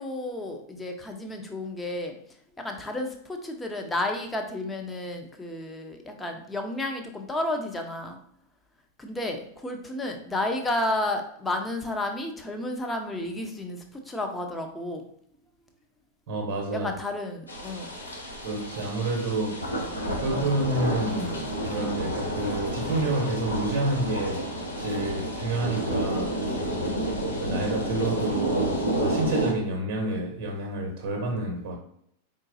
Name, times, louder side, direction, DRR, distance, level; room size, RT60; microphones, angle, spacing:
voice 1, 0.0-2.2 2.6-8.2 9.0-15.0 16.8-17.9 26.7-27.1, left 1 dB, 10° left, 0.7 m, -32 dB
voice 2, 16.3-16.9 18.4-19.7 20.2-24.5 24.8-26.4 27.4-31.8, right 2 dB, 50° right, 0.9 m, -29 dB
sound 1, 17.5-29.5, right 1 dB, 80° left, 0.9 m, -30 dB
4.6 x 3.8 x 2.6 m
figure-of-eight pair, 90°, 0 cm